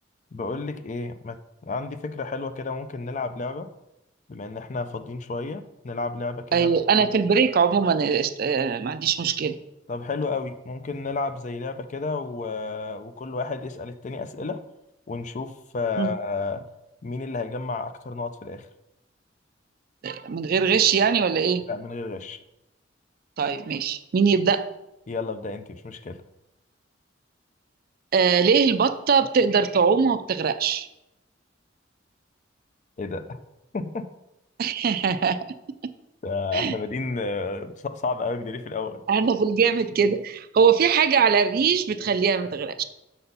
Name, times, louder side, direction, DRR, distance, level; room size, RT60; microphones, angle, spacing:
voice 1, 0.3-1.4 1.6-3.7 4.3-6.7 7.0-7.2 9.9-14.6 15.1-16.6 17.0-18.7 21.7-22.4 25.1-26.2 33.0-33.4 33.7-34.0 36.2-39.0, left 3 dB, 40° left, 10 dB, 0.5 m, -31 dB
voice 2, 6.5-9.6 16.0-16.1 20.0-21.7 23.4-24.7 28.1-30.9 34.6-35.4 36.5-36.7 39.1-42.8, right 6 dB, 50° right, 12 dB, 0.4 m, -21 dB
6.8 x 4.1 x 5.4 m, 0.90 s
head